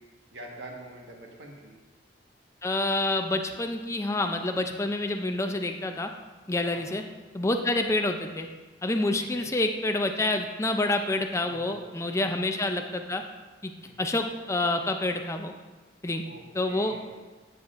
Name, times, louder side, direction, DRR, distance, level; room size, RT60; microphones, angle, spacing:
voice 1, 0.3-1.8 6.7-6.9 9.2-9.5 11.4-11.9 12.2-12.6 13.8-14.0 16.2-17.2, right 1 dB, 65° right, -1 dB, 1.4 m, -45 dB
voice 2, 2.6-6.1 6.5-7.0 7.3-8.5 8.8-13.2 13.6-13.7 14.0-15.5 16.0-16.2 16.5-16.9, left 2 dB, 15° left, 5 dB, 0.4 m, -27 dB
9.5 x 7.6 x 2.5 m, 1.3 s
head